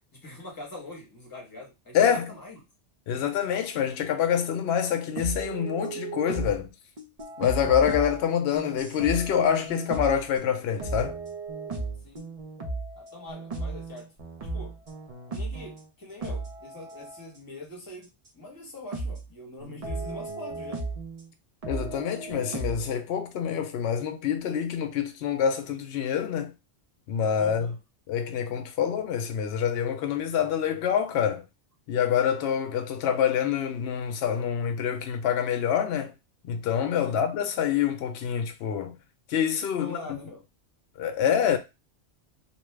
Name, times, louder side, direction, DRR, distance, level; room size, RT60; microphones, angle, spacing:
voice 1, 0.1-2.6 12.0-12.2 12.9-14.1 14.5-14.8 15.3-20.9 27.4-27.8 37.1-37.2 39.8-40.4, left 2 dB, 20° left, 1.0 m, -43 dB
voice 2, 1.9-2.3 3.1-6.7 7.4-11.2 21.7-26.5 27.1-27.7 28.1-31.4 31.9-36.1 36.5-38.9 39.3-40.0 41.0-41.6, left 8 dB, 65° left, 0.7 m, -26 dB
sound 1, 5.2-6.6 7.0-15.8 16.2-17.3 18.3-18.4 18.9-19.3 19.6-21.3 21.6-22.9, right 3 dB, 40° right, 0.6 m, -35 dB
2.7 x 2.3 x 3.2 m
omnidirectional pair, 1.2 m